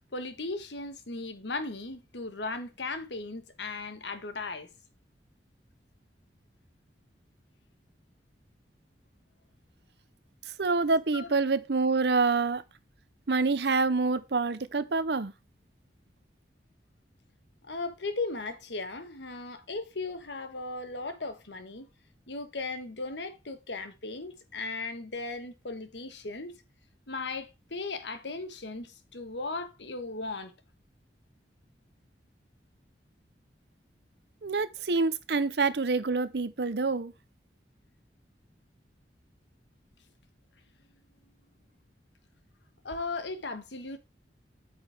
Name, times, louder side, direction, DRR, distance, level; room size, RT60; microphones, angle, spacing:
voice 1, 0.1-4.7 11.1-11.4 17.6-21.9 22.3-26.6 27.1-30.5 42.8-44.0, left 3 dB, 85° left, 1.3 m, -37 dB
voice 2, 10.6-12.6 13.3-15.3 34.4-37.1, right 4 dB, 65° right, 0.7 m, -26 dB
8.7 x 6.4 x 3.4 m
head